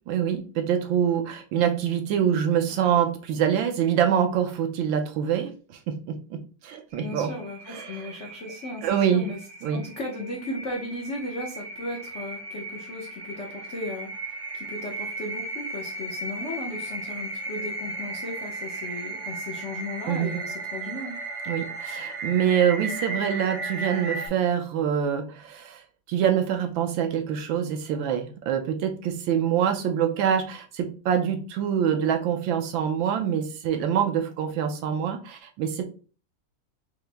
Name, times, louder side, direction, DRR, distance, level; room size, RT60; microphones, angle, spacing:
voice 1, 0.1-7.3 7.7-8.2 8.8-9.3 9.6-9.8 20.1-20.4 21.4-25.8 26.1-35.8, right 8 dB, 75° right, 5 dB, 1.2 m, -25 dB
sound 1, 6.9-24.3, right 2 dB, 40° right, 0.5 m, -36 dB
voice 2, 7.0-9.4 9.7-21.2, left 1 dB, 70° left, -1 dB, 0.6 m, -36 dB
5.6 x 2.0 x 3.3 m, 0.38 s
omnidirectional pair, 2.3 m